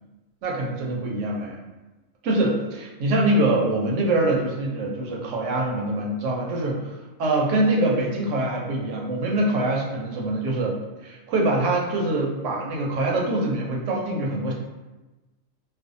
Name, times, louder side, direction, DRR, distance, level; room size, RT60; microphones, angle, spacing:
voice 1, 0.4-1.6 2.2-14.5, right 2 dB, 75° right, -1 dB, 0.9 m, -24 dB
2.5 x 2.2 x 2.5 m, 1.1 s
omnidirectional pair, 1.3 m